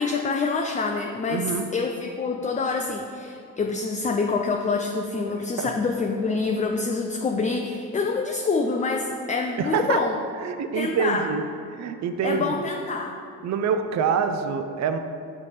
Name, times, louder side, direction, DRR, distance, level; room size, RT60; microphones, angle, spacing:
voice 1, 0.0-10.1 10.7-11.2 12.2-13.1, left 4 dB, 20° left, 3 dB, 0.3 m, -26 dB
voice 2, 1.3-1.7 5.2-5.7 9.6-10.0 10.4-11.4 11.7-12.6 13.4-15.0, right 6 dB, 45° right, 8 dB, 0.5 m, -26 dB
7.3 x 3.2 x 4.1 m, 2.4 s
supercardioid pair, 55°, 39 cm